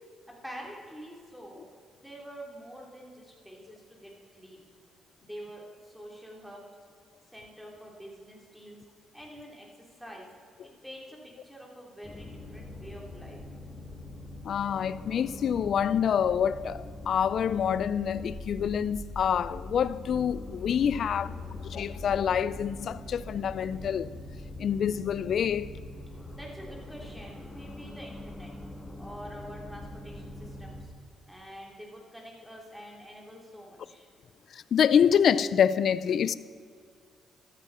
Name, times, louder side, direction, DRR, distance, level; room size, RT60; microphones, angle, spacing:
voice 1, 0.4-1.6 2.0-4.7 5.2-6.6 7.3-8.8 9.1-10.3 10.6-13.4 26.3-28.5 29.0-30.9 31.3-34.1, equal, ahead, 3.6 m, -46 dB
sound 1, 12.0-30.9, left 2 dB, 15° left, 1.6 m, -42 dB
voice 2, 14.4-21.3 21.7-24.1 24.6-25.7 34.7-36.3, left 8 dB, 60° left, 0.4 m, -26 dB
14.5 x 13.5 x 4.3 m
cardioid pair, 90°, 0 cm